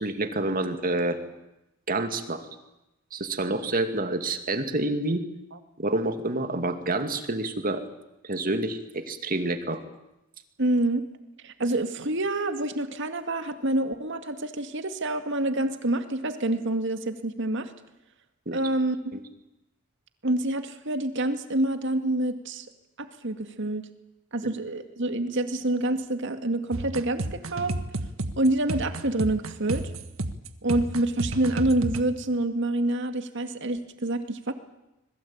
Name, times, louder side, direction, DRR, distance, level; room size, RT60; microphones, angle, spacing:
voice 1, 0.0-1.2 1.9-2.5 3.1-5.2 5.8-7.8 8.2-9.8 18.5-18.6 19.1-19.2, right 2 dB, 45° right, 7 dB, 2.3 m, -28 dB
voice 2, 10.6-11.1 11.4-17.7 18.5-19.0 20.2-22.7 23.0-23.9 24.3-27.7 28.4-29.9 30.6-34.5, right 1 dB, 60° right, 8 dB, 2.2 m, -27 dB
sound 1, 26.7-32.0, right 2 dB, 85° right, 1.6 m, -31 dB
26.0 x 21.0 x 8.9 m, 0.93 s
head